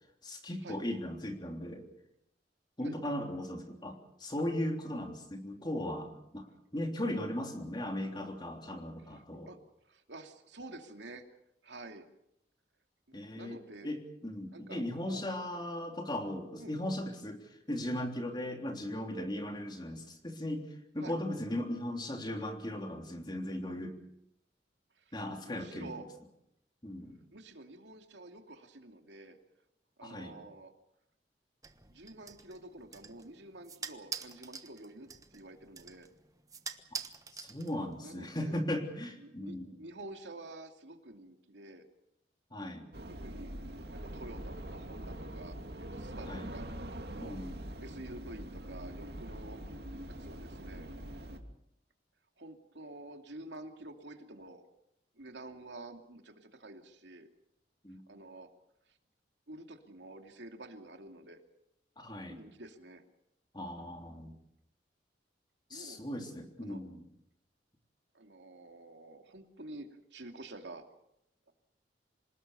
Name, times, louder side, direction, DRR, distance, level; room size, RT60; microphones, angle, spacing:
voice 1, 0.2-1.9 2.8-6.5 6.7-9.5 13.1-20.7 20.9-24.0 25.1-25.9 26.8-27.2 30.0-30.3 37.3-39.7 42.5-42.9 46.3-46.5 47.2-47.6 57.8-58.0 62.0-62.4 63.5-64.3 65.7-67.0, left 1 dB, 25° left, 3 dB, 3.3 m, -37 dB
voice 2, 9.0-9.6 9.8-11.3 11.6-12.1 13.1-13.9 14.5-15.3 16.6-16.7 21.0-21.2 24.9-26.1 27.3-29.4 30.0-30.7 31.9-36.1 38.0-38.6 39.2-41.9 43.1-43.6 43.9-46.7 47.1-47.4 47.8-49.6 50.1-50.9 52.4-54.6 55.1-57.3 58.1-58.5 58.9-59.0 59.5-61.4 62.3-63.0 65.7-66.0 66.6-66.8 68.1-70.9 71.5-71.6, right 2 dB, 85° right, 5 dB, 2.7 m, -49 dB
sound 1, 31.6-38.1, right 6 dB, 20° right, 1.2 m, -46 dB
sound 2, 42.9-51.4, right 1 dB, 65° right, 2.5 m, -43 dB
27.0 x 19.0 x 7.0 m, 0.80 s
head